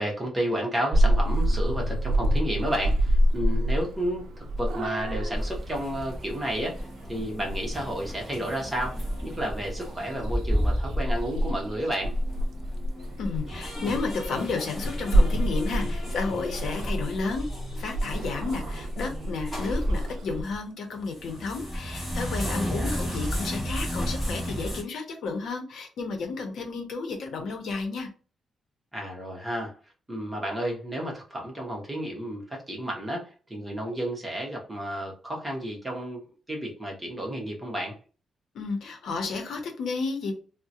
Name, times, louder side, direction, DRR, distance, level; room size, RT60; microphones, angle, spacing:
voice 1, 0.0-12.2 22.4-23.0 28.9-29.8 30.1-36.2 36.5-38.0, right 1 dB, 10° right, -1 dB, 0.9 m, -32 dB
Purr / Meow, 0.9-20.4, equal, 85° right, 0.6 m, -28 dB
sound 1, 5.3-20.6 21.0-24.8, equal, 20° left, 1.5 m, -33 dB
voice 2, 13.2-17.5 17.8-28.1 38.5-40.3, left 4 dB, 70° left, 4 dB, 0.8 m, -32 dB
3.7 x 2.1 x 2.8 m, 0.37 s
wide cardioid pair, 180°, 0 cm